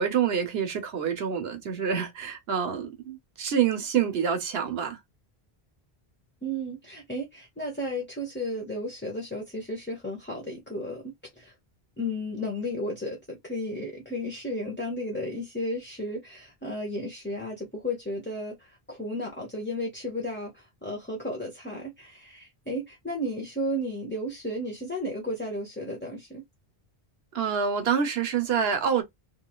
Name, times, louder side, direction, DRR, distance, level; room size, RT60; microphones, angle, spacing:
voice 1, 0.0-5.0 27.3-29.0, right 7 dB, 75° right, 1.1 m, -27 dB
voice 2, 6.4-11.5 12.0-26.4, left 1 dB, 10° left, 0.8 m, -33 dB
3.1 x 2.6 x 2.3 m
omnidirectional pair, 1.1 m